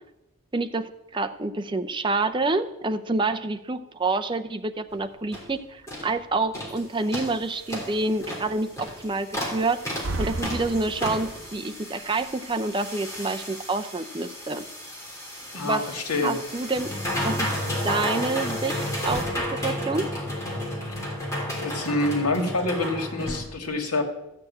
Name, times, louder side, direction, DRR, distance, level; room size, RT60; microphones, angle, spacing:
voice 1, 0.5-9.8 10.2-14.6 15.6-15.9 16.2-16.9 17.2-17.5 17.8-20.1, right 3 dB, 20° right, 8 dB, 0.5 m, -28 dB
sound 1, 4.9-5.0 5.3-5.5 5.9-6.1 6.5-6.8 7.1-23.4, equal, 15° left, 3.5 m, -32 dB
sound 2, 9.8-11.5, right 2 dB, 55° right, 0.9 m, -33 dB
voice 2, 15.5-16.4 20.8-20.9 21.5-24.0, left 2 dB, 85° left, 4 dB, 2.2 m, -27 dB
13.5 x 6.8 x 8.6 m, 0.89 s
head